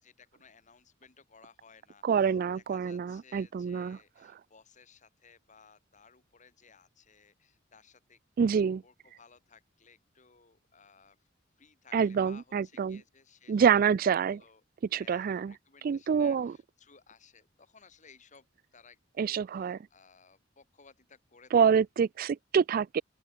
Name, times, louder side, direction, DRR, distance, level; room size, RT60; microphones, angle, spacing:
voice 1, 0.0-11.2 11.6-13.7 14.2-14.6 14.9-18.5 18.7-21.5, left 5 dB, 40° left, 2.6 m, -59 dB
voice 2, 2.0-4.0 8.4-8.8 11.9-13.0 13.5-14.4 14.9-15.5 15.8-16.5 19.2-19.8 21.5-23.0, right 7 dB, 50° right, 0.3 m, -26 dB
open air
head